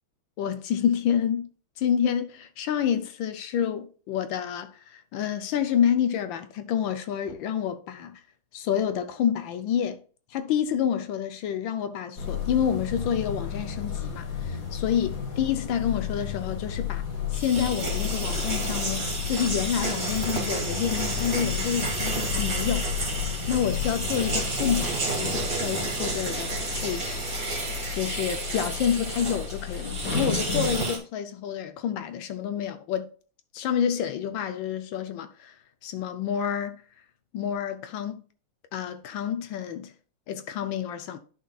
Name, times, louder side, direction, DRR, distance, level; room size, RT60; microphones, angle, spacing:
voice 1, 0.4-1.5 1.8-8.2 8.5-10.0 10.3-17.0 17.3-23.1 23.5-27.5 27.9-33.1 33.5-35.6 35.8-36.8 37.3-38.2 38.7-39.9 40.3-41.2, left 9 dB, 75° left, 1.3 m, -28 dB
sound 1, 12.2-30.7, left 7 dB, 50° left, 1.4 m, -33 dB
sound 2, 17.3-31.0, right 3 dB, 45° right, 2.5 m, -31 dB
11.0 x 5.5 x 2.3 m
omnidirectional pair, 2.3 m